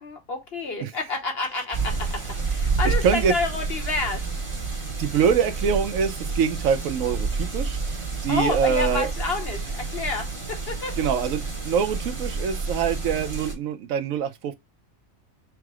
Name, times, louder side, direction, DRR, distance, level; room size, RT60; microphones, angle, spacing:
voice 1, 0.0-4.3 8.3-11.0, left 4 dB, 50° left, 1.0 m, -29 dB
sound 1, 1.7-13.5, right 4 dB, 25° right, 1.0 m, -29 dB
voice 2, 2.8-3.3 5.0-9.1 11.0-14.5, right 7 dB, 75° right, 1.0 m, -24 dB
4.6 x 2.0 x 4.6 m
omnidirectional pair, 1.5 m